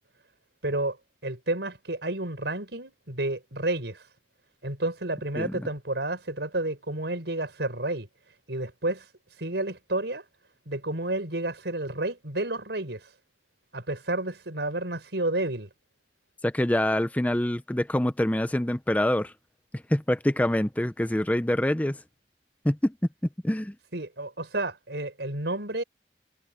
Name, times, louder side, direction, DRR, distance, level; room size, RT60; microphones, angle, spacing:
voice 1, 0.6-1.0 1.2-4.0 4.6-8.1 8.5-9.0 9.4-10.2 10.7-13.0 13.7-15.7 23.9-25.8, right 2 dB, 80° right, 4.9 m, -30 dB
voice 2, 5.4-5.7 16.4-19.3 19.7-22.0 22.6-22.9 23.4-23.8, left 1 dB, 10° left, 0.5 m, -25 dB
head